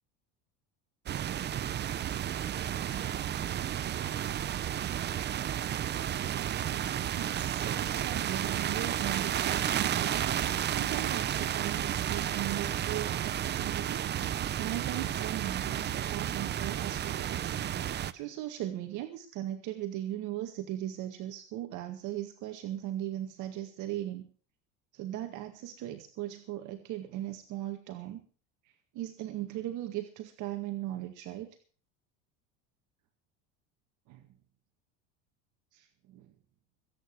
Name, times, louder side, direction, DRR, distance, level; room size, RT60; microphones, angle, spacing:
sound 1, 1.1-18.1, right 10 dB, 30° right, 0.8 m, -32 dB
voice 1, 7.1-10.3 10.7-17.6 18.1-24.3 24.9-28.2 28.9-31.5 34.1-34.2 35.7-36.3, right 13 dB, 60° right, 5 dB, 2.0 m, -38 dB
23.5 x 9.2 x 4.7 m, 0.40 s
cardioid pair, 130°, 35 cm